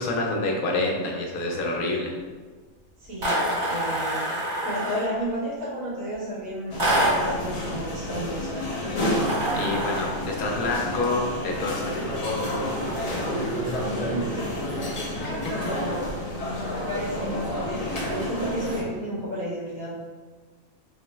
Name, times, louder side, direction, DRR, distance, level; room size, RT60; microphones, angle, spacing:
voice 1, 0.0-2.1 9.5-12.8 15.2-15.3, left 2 dB, 80° left, 0 dB, 1.1 m, -28 dB
voice 2, 3.0-4.4 4.6-8.6 14.1-14.6 15.5-15.9 16.7-19.9, right 1 dB, 65° right, -9 dB, 1.9 m, -32 dB
sound 1, 3.2-5.2 6.8-7.4 9.2-10.2, right 1 dB, 50° right, 1.9 m, -26 dB
sound 2, 6.7-18.8, left 1 dB, 55° left, 0.4 m, -30 dB
3.7 x 2.9 x 3.3 m, 1.4 s
omnidirectional pair, 1.5 m